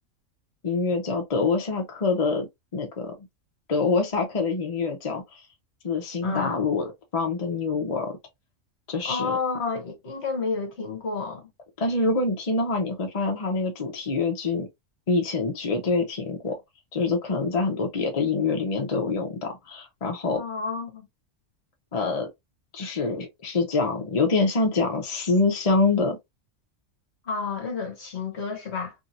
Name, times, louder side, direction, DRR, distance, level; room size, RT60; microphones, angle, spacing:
voice 1, 0.6-3.1 3.7-5.4 5.8-8.2 8.9-9.4 11.8-14.7 15.1-16.6 16.9-20.4 21.9-22.3 22.7-26.2, left 3 dB, 35° left, 0.8 m, -25 dB
voice 2, 6.2-6.5 9.0-11.5 20.3-21.1 27.3-28.9, left 4 dB, 60° left, 1.2 m, -30 dB
2.7 x 2.7 x 2.6 m
omnidirectional pair, 1.3 m